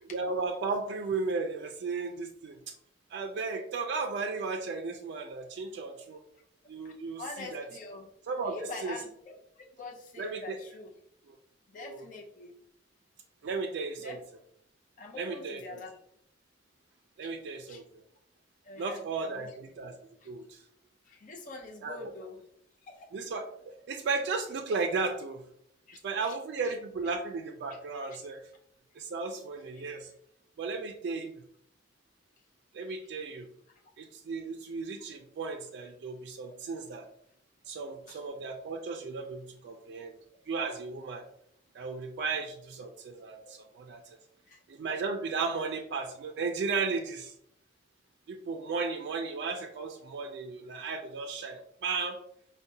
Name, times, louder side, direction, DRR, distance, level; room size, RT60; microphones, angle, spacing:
voice 1, 0.1-2.8 3.1-6.2 6.7-7.6 8.3-9.0 10.2-10.6 11.3-11.4 11.8-12.0 13.4-14.2 15.1-15.6 17.2-17.8 18.8-20.0 20.3-20.6 21.8-22.1 23.1-25.4 26.0-28.4 29.0-30.1 30.6-31.3 32.7-33.5 34.0-37.1 37.7-40.1 40.5-41.2 41.7-44.2 44.7-47.3 48.3-52.2, right 4 dB, 65° right, 3 dB, 0.3 m, -35 dB
voice 2, 6.8-8.1 8.5-10.9 11.7-12.5 14.0-14.2 15.0-15.9 17.7-17.8 18.6-19.5 20.2-20.3 21.0-22.4 22.9-23.1 25.9-26.3 26.6-26.7 32.9-33.0 38.1-38.2 44.4-44.6, left 3 dB, 45° left, -1 dB, 0.5 m, -44 dB
4.6 x 2.1 x 2.6 m, 0.70 s
head